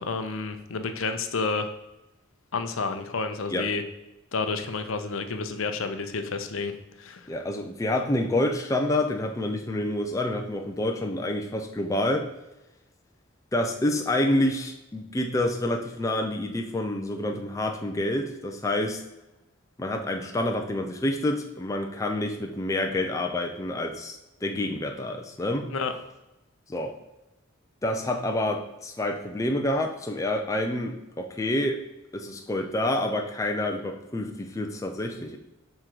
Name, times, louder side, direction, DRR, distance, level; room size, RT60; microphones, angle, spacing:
voice 1, 0.0-1.7 2.5-3.8 4.3-6.7 7.0-7.3 25.7-25.9, left 4 dB, 65° left, 7 dB, 0.6 m, -30 dB
voice 2, 7.3-12.3 13.5-19.0 19.8-25.7 26.7-26.9 27.8-31.8 32.1-35.4, left 1 dB, 15° left, 3 dB, 0.4 m, -28 dB
6.3 x 3.7 x 4.4 m, 0.95 s
head